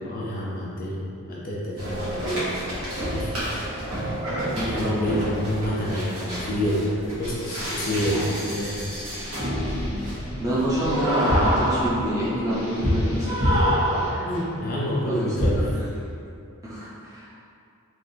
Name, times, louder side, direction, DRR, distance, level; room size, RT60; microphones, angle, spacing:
voice 1, 0.0-2.6 3.0-3.3 4.5-8.8 13.9-15.8 16.8-16.9, equal, 40° left, -5 dB, 0.4 m, -28 dB
sound 1, 1.8-14.6 15.4-15.8, equal, 80° right, 1.1 m, -27 dB
voice 2, 4.5-5.2 10.4-13.4 15.0-15.1 15.7-15.9 16.6-17.3, equal, 15° right, -10 dB, 0.7 m, -27 dB
Guitar, 7.3-8.7 9.0-12.0 12.4-14.6, equal, 70° left, 0.8 m, -40 dB
3.3 x 2.5 x 2.7 m, 2.5 s
head